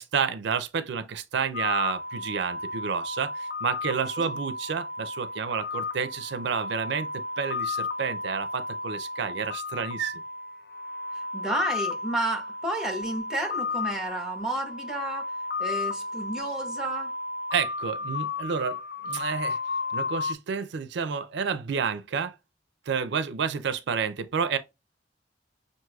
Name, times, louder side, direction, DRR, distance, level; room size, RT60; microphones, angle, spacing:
voice 1, 0.0-10.2 17.5-18.8 19.0-19.6 19.9-22.3 22.9-24.6, right 6 dB, 70° right, 0.4 m, -30 dB
sound 1, 1.5-20.3, left 3 dB, 60° left, 0.6 m, -33 dB
voice 2, 11.1-15.3 15.6-17.2, right 2 dB, 5° right, 1.0 m, -31 dB
6.0 x 2.6 x 2.3 m
head